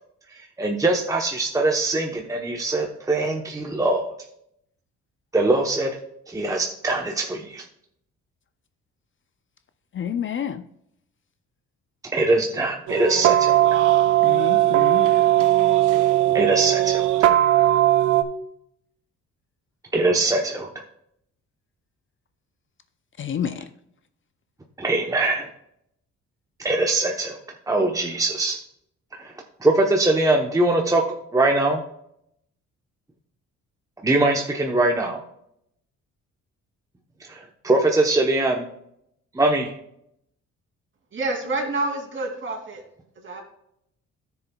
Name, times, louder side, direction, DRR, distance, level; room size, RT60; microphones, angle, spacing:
voice 1, 0.3-4.1 5.3-6.0 6.3-7.6 12.1-13.6 16.3-17.3 19.9-20.7 24.8-25.5 26.6-27.4 27.7-28.6 29.1-29.3 29.6-31.0 31.3-31.8 34.0-35.2 37.3-38.6 39.3-39.7, right 2 dB, 10° right, 0.8 m, -22 dB
voice 2, 9.9-10.6 14.2-15.5 23.2-23.7, left 8 dB, 40° left, 0.5 m, -29 dB
sound 1, 12.9-18.2, right 14 dB, 85° right, 0.7 m, -18 dB
voice 3, 41.1-42.8 43.2-43.4, right 2 dB, 40° right, 2.5 m, -28 dB
12.5 x 7.0 x 2.3 m
cardioid pair, 90°, 30 cm